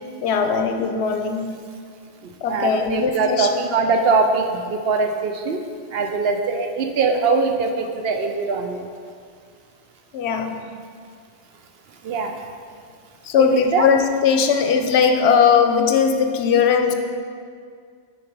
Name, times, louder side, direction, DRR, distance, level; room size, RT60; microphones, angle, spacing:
voice 1, 0.2-1.6 2.4-3.7 10.1-10.6 13.3-16.9, left 6 dB, 70° left, 6 dB, 0.8 m, -19 dB
voice 2, 2.5-5.6 5.9-8.9 12.0-12.4 13.4-13.9, right 4 dB, 65° right, 4 dB, 0.7 m, -22 dB
7.1 x 4.8 x 4.6 m, 2.2 s
omnidirectional pair, 1.2 m